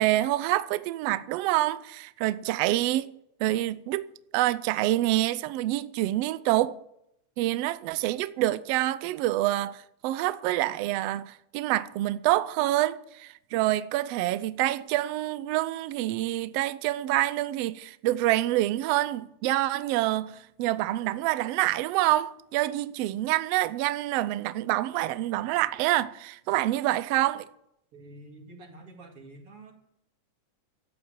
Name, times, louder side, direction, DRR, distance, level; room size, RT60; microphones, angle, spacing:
voice 1, 0.0-3.1 3.4-6.8 7.4-27.5, right 16 dB, 80° right, 1.4 m, -27 dB
voice 2, 27.9-29.7, right 2 dB, 50° right, 2.9 m, -48 dB
13.0 x 8.3 x 8.7 m
omnidirectional pair, 3.4 m